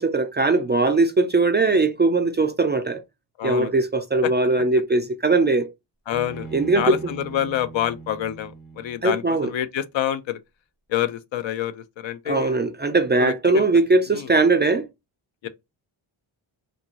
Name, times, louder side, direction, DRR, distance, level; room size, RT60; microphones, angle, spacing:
voice 1, 0.0-3.0 3.4-5.7 6.5-7.0 9.0-9.5 12.3-14.9, right 3 dB, 25° right, 0.3 m, -20 dB
voice 2, 3.4-3.7 4.2-4.3 6.1-6.5 6.7-10.4 10.9-12.6 13.2-13.6 14.1-14.3 15.4-15.5, left 11 dB, 65° left, 0.5 m, -27 dB
Bowed string instrument, 6.1-9.4, right 4 dB, 40° left, 1.3 m, -40 dB
2.7 x 2.5 x 2.9 m
cardioid pair, 65°, 50 cm